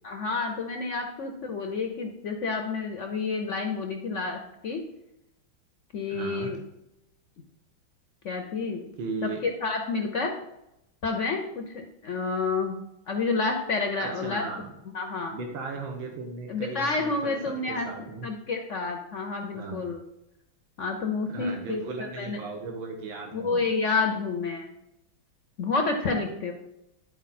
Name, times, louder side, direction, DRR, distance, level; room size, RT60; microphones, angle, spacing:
voice 1, 0.0-4.8 5.9-6.6 8.2-8.8 9.2-10.3 11.0-12.8 13.1-14.4 14.9-15.4 16.5-17.9 18.2-20.0 20.8-22.4 23.3-24.7 25.6-26.5, left 4 dB, 65° left, 4 dB, 0.7 m, -29 dB
voice 2, 6.1-6.6 9.0-9.4 14.0-14.7 15.3-18.3 19.5-19.8 21.3-23.6, right 3 dB, 80° right, 2 dB, 1.9 m, -36 dB
11.5 x 4.5 x 4.2 m, 0.87 s
omnidirectional pair, 2.1 m